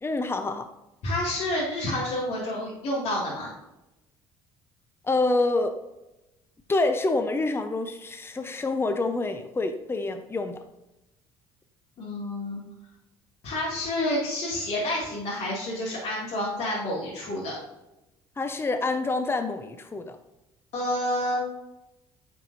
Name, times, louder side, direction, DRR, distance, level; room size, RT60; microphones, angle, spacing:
voice 1, 0.0-0.7 5.0-5.8 6.7-10.6 18.4-20.2, left 2 dB, 20° left, 8 dB, 0.7 m, -27 dB
voice 2, 1.0-3.5 12.0-12.6 13.4-17.5 20.7-21.4, left 1 dB, 60° left, -6 dB, 2.2 m, -29 dB
9.0 x 4.7 x 2.7 m, 0.94 s
hypercardioid pair, 60°, 12 cm